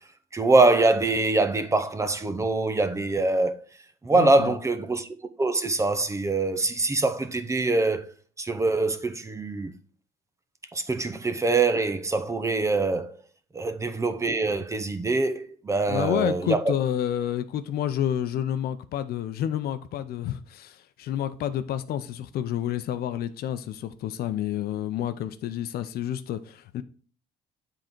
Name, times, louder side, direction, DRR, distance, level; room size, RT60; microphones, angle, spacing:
voice 1, 0.3-3.5 4.0-5.1 5.4-8.1 8.4-9.7 10.7-13.2 13.5-16.7, right 3 dB, 15° right, 0.7 m, -24 dB
voice 2, 4.1-4.5 13.6-13.7 15.9-26.8, left 10 dB, 65° left, 0.6 m, -29 dB
7.5 x 3.8 x 4.5 m
cardioid pair, 110°, 17 cm